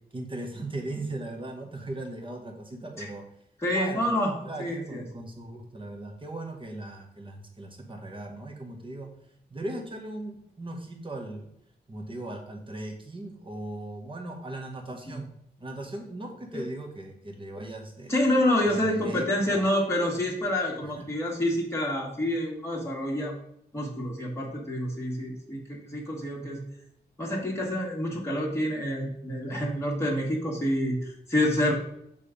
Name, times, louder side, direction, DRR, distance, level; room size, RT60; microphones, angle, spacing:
voice 1, 0.1-3.2 3.7-4.1 4.4-9.2 9.5-11.5 11.9-15.3 15.6-18.1 18.7-19.2 19.5-19.7 20.8-21.0, right 2 dB, 30° right, 2 dB, 1.4 m, -38 dB
voice 2, 3.6-5.0 15.1-15.2 16.5-16.6 18.1-23.3 23.7-26.6 27.2-31.7, left 1 dB, 15° left, -4 dB, 1.7 m, -28 dB
6.7 x 3.5 x 5.1 m, 0.72 s
wide cardioid pair, 90°, 17 cm